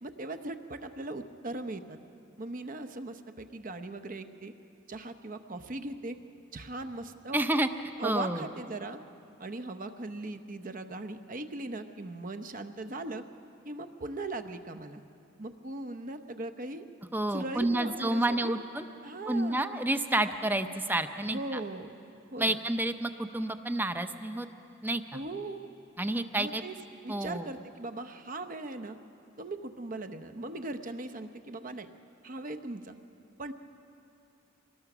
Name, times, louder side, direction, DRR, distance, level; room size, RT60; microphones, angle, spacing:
voice 1, 0.0-2.0 2.4-4.5 4.9-6.2 6.5-7.5 8.0-9.0 9.4-13.2 13.6-15.0 15.4-16.9 17.3-18.6 19.0-19.8 21.2-21.9 22.3-22.6 25.1-25.7 26.3-26.8 27.0-29.0 29.4-31.9 32.2-32.9 33.4-33.5, right 2 dB, 40° right, 9 dB, 0.8 m, -39 dB
voice 2, 7.3-7.7 8.0-8.4 17.1-18.8 19.3-21.6 22.4-24.5 24.8-25.2 26.0-26.6 27.1-27.5, right 1 dB, 10° right, 9 dB, 0.6 m, -29 dB
25.0 x 20.0 x 6.1 m, 2.8 s
head